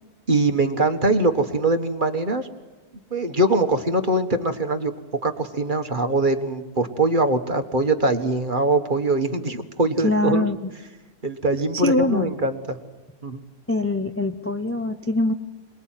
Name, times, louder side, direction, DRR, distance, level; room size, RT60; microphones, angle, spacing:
voice 1, 0.3-2.5 3.1-4.9 5.2-10.5 11.2-12.8 13.2-13.4, right 2 dB, 30° right, 8 dB, 1.6 m, -22 dB
voice 2, 10.0-10.7 11.7-12.4 13.7-15.3, left 2 dB, 20° left, 7 dB, 0.4 m, -23 dB
27.0 x 20.5 x 9.1 m, 1.2 s
omnidirectional pair, 1.7 m